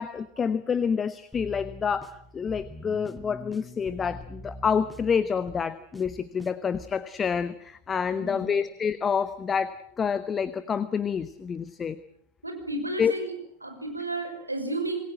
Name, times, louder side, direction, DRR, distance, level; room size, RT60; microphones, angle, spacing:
voice 1, 0.0-12.0 13.0-13.1, left 6 dB, 20° left, 14 dB, 1.0 m, -28 dB
sound 1, 1.3-7.0, equal, ahead, 1.7 m, -44 dB
voice 2, 8.1-8.6 12.4-13.3 13.6-15.0, right 2 dB, 85° right, 5 dB, 6.0 m, -32 dB
27.5 x 20.0 x 7.5 m, 0.66 s
figure-of-eight pair, 90°, 0 cm